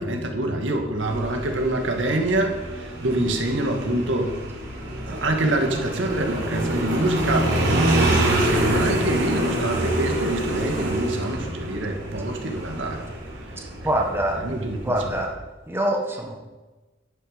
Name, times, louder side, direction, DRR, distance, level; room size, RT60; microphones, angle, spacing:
voice 1, 0.0-4.4 5.1-13.1 13.8-13.9 14.3-14.8 15.0-15.1, right 1 dB, 80° right, 3 dB, 2.1 m, -26 dB
Motorcycle, 1.0-15.3, right 1 dB, 65° right, 4.2 m, -26 dB
voice 2, 13.8-14.4 14.8-15.3 15.7-16.4, right 1 dB, 15° right, 1 dB, 1.5 m, -24 dB
11.5 x 11.0 x 5.2 m, 1.2 s
head